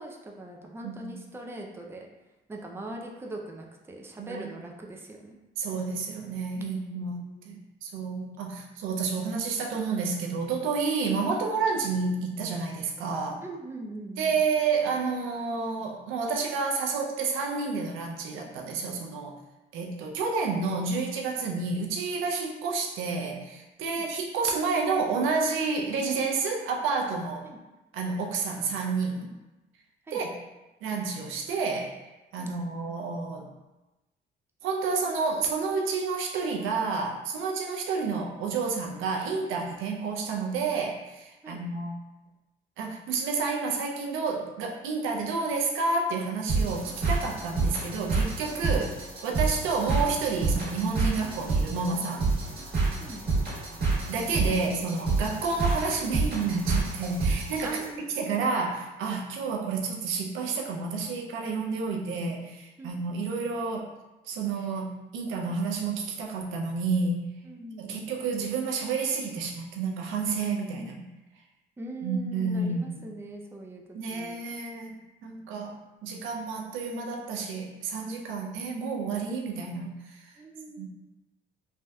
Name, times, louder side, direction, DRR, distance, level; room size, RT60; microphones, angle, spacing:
voice 1, 0.0-2.1 2.5-5.4 6.9-7.6 11.1-11.2 13.4-14.3 23.9-24.1 27.4-27.6 30.1-30.2 32.4-32.5 41.4-41.6 48.7-48.9 53.0-53.2 57.6-58.3 62.8-63.0 67.4-68.0 70.8-71.0 71.8-74.4 80.4-80.9, right 1 dB, 10° right, 0 dB, 0.4 m, -41 dB
voice 2, 0.8-1.1 4.2-4.4 5.6-7.2 7.5-13.4 14.2-19.3 19.7-27.4 27.9-29.3 30.1-30.3 30.8-32.0 32.3-33.5 34.6-41.9 42.8-48.9 49.2-52.3 54.1-57.8 58.2-63.9 64.2-67.2 67.8-70.9 72.0-72.9 73.9-80.4 80.8-80.9, right 4 dB, 90° right, 0 dB, 0.5 m, -30 dB
sound 1, 46.5-57.9, right 3 dB, 55° right, 1.5 m, -28 dB
3.3 x 2.6 x 2.2 m, 1.0 s
cardioid pair, 90°, 20 cm